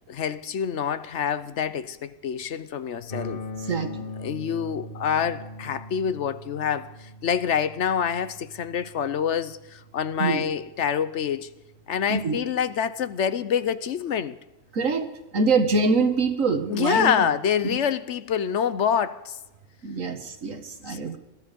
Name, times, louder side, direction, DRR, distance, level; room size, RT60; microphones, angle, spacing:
voice 1, 0.1-3.4 4.2-11.5 11.9-14.4 16.7-19.4 20.9-21.2, left 8 dB, 65° left, 1.0 m, -26 dB
sound 1, 3.1-13.0, left 1 dB, 45° left, 1.6 m, -41 dB
voice 2, 3.6-4.1 10.2-10.4 12.1-12.4 14.7-15.1 15.3-17.3 17.6-17.8 19.8-21.2, right 4 dB, 80° right, 1.9 m, -24 dB
20.5 x 13.0 x 5.2 m
omnidirectional pair, 1.4 m